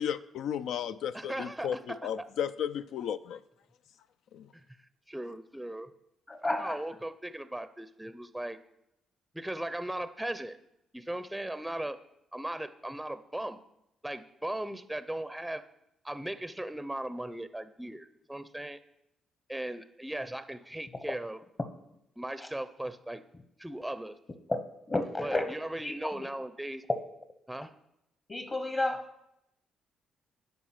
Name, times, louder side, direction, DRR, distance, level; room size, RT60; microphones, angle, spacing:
voice 1, 0.0-1.8 2.0-3.4 4.3-4.4, left 9 dB, 80° left, 12 dB, 0.3 m, -34 dB
voice 2, 1.1-2.3 4.5-4.6 5.1-5.9 6.4-8.6 9.3-10.6 10.9-12.0 12.3-13.6 14.0-15.6 16.0-18.8 19.5-21.4 22.2-23.2 23.6-24.2 25.2-26.8 27.5-27.7, right 1 dB, 5° right, 11 dB, 0.5 m, -38 dB
voice 3, 6.3-6.8 21.1-21.2 24.5-24.6 24.9-25.5 25.8-26.3 28.3-29.0, left 2 dB, 30° left, 7 dB, 0.8 m, -31 dB
9.4 x 5.2 x 5.9 m, 0.83 s
cardioid pair, 90°, 0 cm